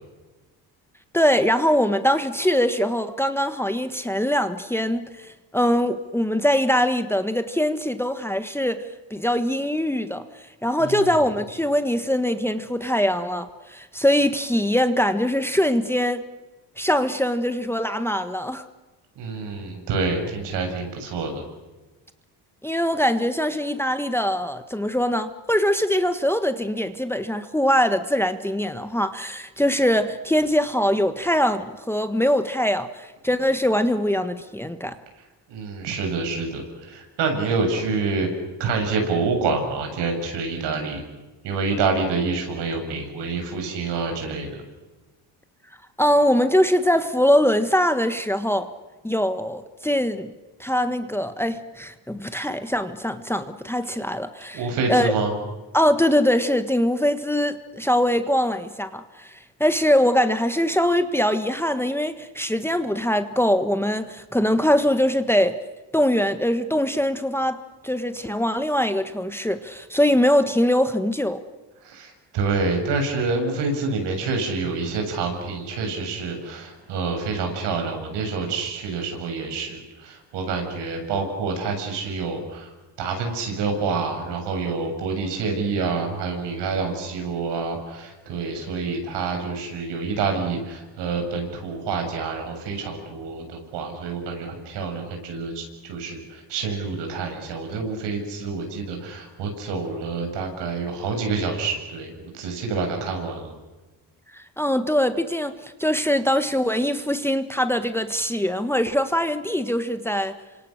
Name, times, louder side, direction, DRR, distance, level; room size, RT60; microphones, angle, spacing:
voice 1, 1.1-10.2 10.6-16.2 16.8-18.6 22.6-34.9 46.0-48.7 49.0-50.3 50.6-54.6 54.9-55.1 55.7-65.6 65.9-71.4 104.3-110.3, equal, 5° left, 9 dB, 1.5 m, -22 dB
voice 2, 10.8-11.2 19.2-21.4 35.5-38.3 38.6-41.0 41.4-44.6 54.5-55.3 71.8-82.7 83.0-103.5, right 4 dB, 75° right, 4 dB, 7.6 m, -27 dB
28.0 x 25.5 x 6.6 m, 1.2 s
cardioid pair, 105°, 42 cm